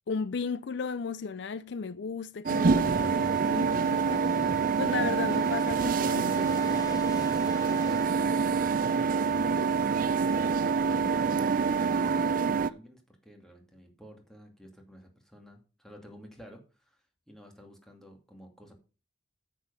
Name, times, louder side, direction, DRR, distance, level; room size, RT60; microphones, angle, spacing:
voice 1, 0.1-4.3 4.7-6.7, left 5 dB, 60° left, 0.4 m, -35 dB
sound 1, 2.5-12.3, left 2 dB, 20° left, 0.9 m, -47 dB
sound 2, 2.5-12.7, right 5 dB, 45° right, 0.5 m, -26 dB
voice 2, 8.5-10.1 12.2-18.7, equal, 5° left, 2.4 m, -52 dB
9.6 x 7.6 x 5.5 m
head